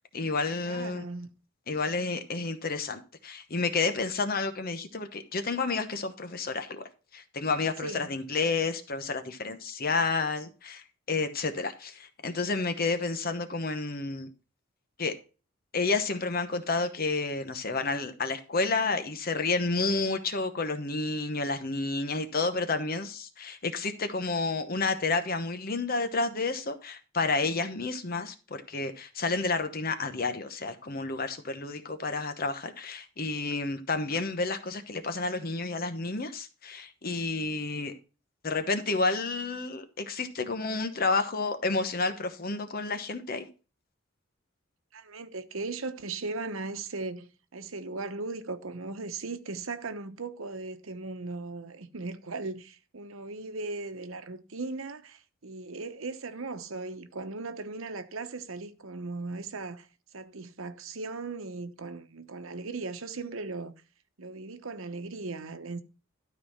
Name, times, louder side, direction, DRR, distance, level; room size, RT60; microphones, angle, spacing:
voice 1, 0.1-1.0 1.7-14.3 15.0-15.1 15.7-37.9 38.4-43.5, left 3 dB, 45° left, 1.0 m, -30 dB
voice 2, 0.7-1.3 7.8-8.1 44.9-59.9 60.1-63.7 64.2-65.8, right 3 dB, 80° right, 1.0 m, -38 dB
12.5 x 4.2 x 5.7 m
head